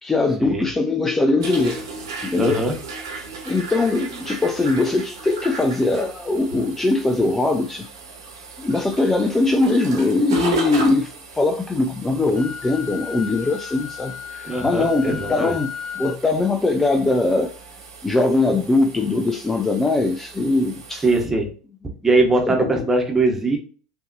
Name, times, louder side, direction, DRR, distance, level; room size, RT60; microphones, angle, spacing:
voice 1, 0.0-1.8 2.2-2.7 3.4-7.9 8.6-15.7 16.0-17.6 18.0-21.0 22.5-22.8, left 2 dB, 15° left, 0.4 m, -21 dB
sound 1, 1.4-21.3, right 4 dB, 75° right, 1.5 m, -36 dB
voice 2, 2.4-2.7 14.4-15.6 21.0-21.5 22.0-23.6, right 2 dB, 15° right, 1.2 m, -21 dB
Wind instrument woodwind instrument, 12.3-16.2, left 9 dB, 40° left, 1.0 m, -35 dB
5.6 x 2.7 x 2.6 m
figure-of-eight pair, 80°, 2 cm